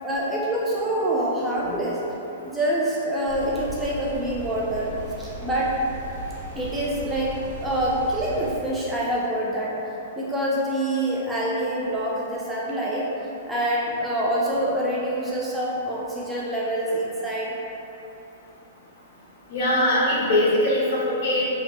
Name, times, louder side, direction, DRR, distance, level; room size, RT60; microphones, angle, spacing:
voice 1, 0.0-2.0 2.4-5.7 6.5-9.7 10.2-13.1 13.5-17.6, right 1 dB, 5° right, -6 dB, 0.3 m, -26 dB
sound 1, 3.2-8.5, right 1 dB, 80° right, 1.2 m, -37 dB
voice 2, 19.5-21.5, left 1 dB, 55° left, -6 dB, 0.9 m, -21 dB
3.0 x 2.1 x 2.9 m, 2.8 s
hypercardioid pair, 145°, 0 cm